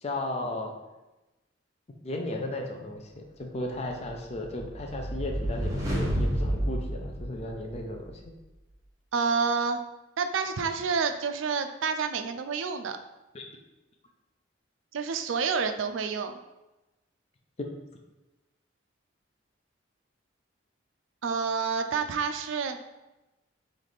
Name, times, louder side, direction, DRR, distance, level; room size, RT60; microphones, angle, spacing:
voice 1, 0.0-0.7 2.0-8.2 13.3-13.4, left 1 dB, 35° left, 2 dB, 0.5 m, -35 dB
sound 1, 4.1-7.9, equal, 15° right, 0.8 m, -30 dB
voice 2, 9.1-9.8 10.2-13.0 14.9-16.3 21.2-22.8, right 5 dB, 75° right, 7 dB, 0.4 m, -28 dB
3.2 x 3.2 x 4.0 m, 1.0 s
head